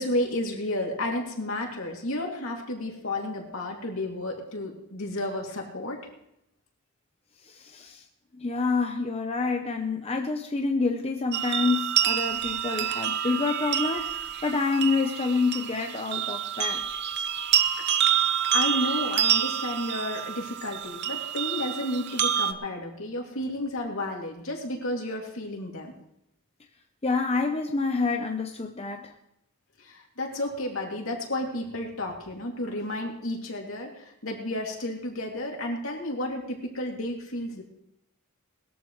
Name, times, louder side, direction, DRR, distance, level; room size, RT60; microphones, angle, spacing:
voice 1, 0.0-6.0 18.5-25.9 29.8-37.6, left 1 dB, 70° left, 0 dB, 2.7 m, -32 dB
voice 2, 7.5-8.0 8.3-14.1 14.4-16.8 27.0-29.1, left 4 dB, 30° left, 3 dB, 0.8 m, -27 dB
sound 1, 11.3-22.5, right 9 dB, 55° right, 0.8 m, -27 dB
21.0 x 13.5 x 3.2 m, 0.81 s
head